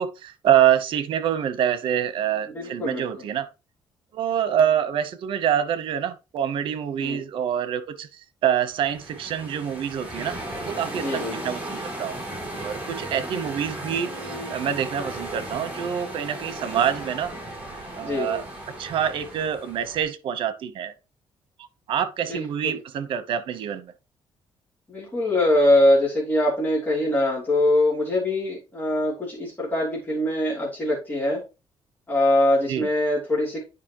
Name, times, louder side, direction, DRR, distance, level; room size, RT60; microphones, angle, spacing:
voice 1, 0.0-3.5 4.1-8.1 8.4-10.4 10.7-12.2 12.5-17.3 18.0-18.4 18.8-20.9 21.9-23.9 32.7-32.9, right 9 dB, 70° right, 1.0 m, -26 dB
voice 2, 2.5-3.0 7.0-7.2 11.0-11.4 14.1-14.5 18.0-18.4 22.3-22.8 24.9-31.4 32.1-33.6, left 1 dB, 20° left, 3.1 m, -23 dB
sound 1, 8.7-20.0, right 1 dB, 15° right, 4.0 m, -36 dB
9.7 x 5.1 x 3.0 m
cardioid pair, 135°, 9 cm